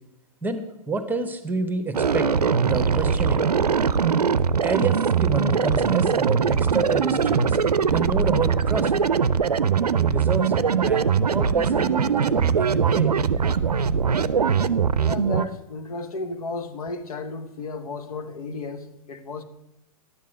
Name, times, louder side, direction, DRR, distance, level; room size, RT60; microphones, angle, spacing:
voice 1, 0.4-2.3 2.6-3.4 4.6-7.6 7.9-8.9 10.0-13.1, right 3 dB, 10° right, 8 dB, 1.0 m, -29 dB
sound 1, 1.9-15.5, right 6 dB, 90° right, 0.5 m, -21 dB
voice 2, 15.0-19.4, left 3 dB, 70° left, 8 dB, 1.2 m, -33 dB
11.0 x 7.3 x 6.2 m, 0.91 s
figure-of-eight pair, 105°, 19 cm